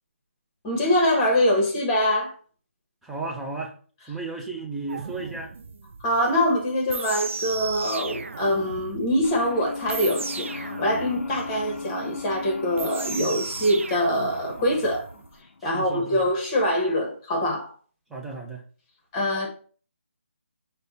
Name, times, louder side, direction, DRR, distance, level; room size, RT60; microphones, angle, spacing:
voice 1, 0.6-2.3 6.0-15.1 15.6-17.7 19.1-19.5, equal, 20° left, 1.0 m, -24 dB
voice 2, 3.0-3.7 4.1-5.5 15.6-16.3 18.1-18.6, right 3 dB, ahead, 0.4 m, -34 dB
sound 1, 4.9-15.3, right 4 dB, 70° right, 0.4 m, -37 dB
sound 2, 9.2-15.6, left 4 dB, 85° left, 0.5 m, -38 dB
5.3 x 2.2 x 4.1 m
hypercardioid pair, 165°, 7 cm